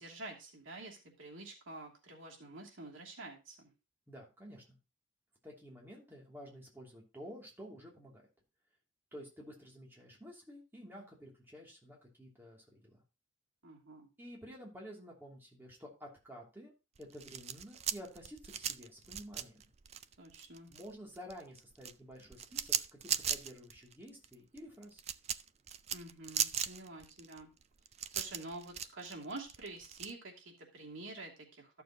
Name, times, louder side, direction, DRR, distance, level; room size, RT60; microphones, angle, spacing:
voice 1, 0.0-3.7 13.6-14.1 20.2-20.7 25.9-27.5 28.1-31.8, right 2 dB, 85° right, -1 dB, 2.8 m, -48 dB
voice 2, 4.1-4.8 5.4-8.2 9.1-13.0 14.2-16.7 17.0-19.6 20.7-25.0, equal, 10° right, -3 dB, 2.8 m, -51 dB
sound 1, 17.0-20.9 21.2-30.1, right 9 dB, 35° right, 0.3 m, -38 dB
13.5 x 6.8 x 3.0 m, 0.28 s
head